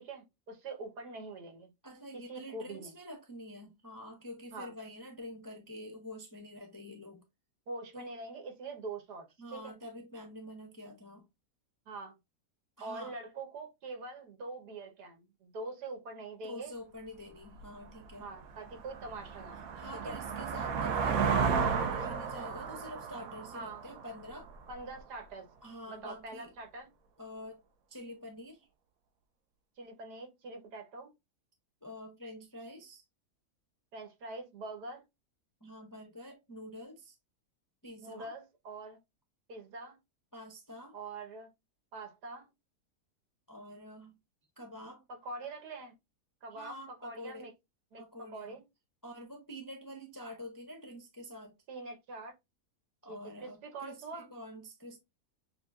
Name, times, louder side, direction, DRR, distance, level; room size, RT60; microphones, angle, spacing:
voice 1, 0.0-1.7 2.1-2.9 4.5-4.7 7.7-9.8 11.9-12.1 12.8-16.7 18.2-19.7 19.9-20.2 23.5-23.8 24.7-25.5 25.9-26.9 29.8-31.1 33.9-35.0 38.0-39.0 39.5-40.0 40.9-41.5 41.9-42.5 45.1-45.9 46.4-47.5 47.9-48.6 51.7-52.3 53.1-54.3, right 3 dB, 90° right, 1.7 m, -44 dB
voice 2, 1.8-7.2 7.9-8.1 9.4-11.2 12.8-13.1 16.4-18.3 19.8-24.5 25.6-26.5 27.2-27.6 27.9-28.7 31.8-33.0 35.6-37.2 37.8-38.3 40.3-41.0 43.5-44.1 44.6-45.1 46.5-47.5 48.0-48.6 49.0-51.5 53.0-55.0, left 1 dB, 30° left, 0.3 m, -47 dB
sound 1, 17.6-17.7 18.2-24.8, right 6 dB, 70° right, 1.0 m, -33 dB
6.7 x 2.3 x 2.4 m
omnidirectional pair, 1.7 m